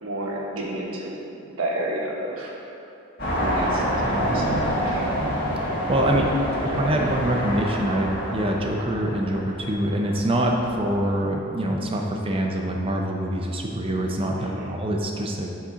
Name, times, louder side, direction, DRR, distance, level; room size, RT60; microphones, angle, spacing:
voice 1, 0.0-1.2 1.4-2.5 3.3-5.1 6.1-6.3 6.7-7.1 14.4-14.7, right 1 dB, 65° right, -2 dB, 1.3 m, -31 dB
sound 1, 3.2-11.1, equal, 40° left, 1.7 m, -27 dB
voice 2, 5.9-6.2 6.6-15.5, right 1 dB, 25° right, 1 dB, 0.6 m, -25 dB
8.5 x 4.3 x 5.0 m, 2.7 s
head